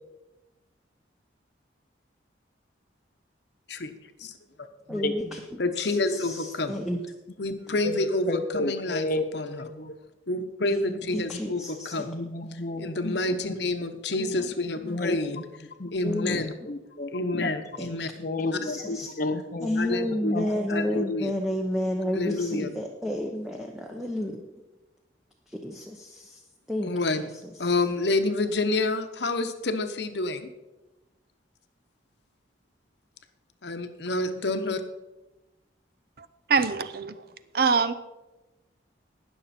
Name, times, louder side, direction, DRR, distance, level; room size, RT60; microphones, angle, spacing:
voice 1, 4.9-7.0 10.6-12.1 14.2-14.5 16.0-16.4 17.8-17.9 18.6-19.1 19.6-24.4 25.5-26.4 26.7-26.9 27.2-27.5, left 1 dB, 5° right, 1 dB, 0.8 m, -31 dB
voice 2, 5.6-6.8 7.4-9.1 9.3-9.6 10.3-12.2 12.8-15.4 15.9-16.5 17.1-18.1 18.5-18.6 18.9-19.0 19.8-20.3 20.7-21.3 22.1-22.7 26.8-27.2 27.6-30.5 33.6-34.8, left 2 dB, 70° left, 8 dB, 1.0 m, -28 dB
voice 3, 7.8-9.9 12.1-12.9 14.8-15.4 15.8-16.3 16.7-17.1 17.4-17.5 18.2-18.9 19.2-19.8 20.3-20.5, left 2 dB, 45° left, 8 dB, 0.7 m, -31 dB
voice 4, 36.2-37.3 37.5-37.9, right 5 dB, 55° right, 13 dB, 0.6 m, -24 dB
19.5 x 6.7 x 4.3 m, 1.1 s
head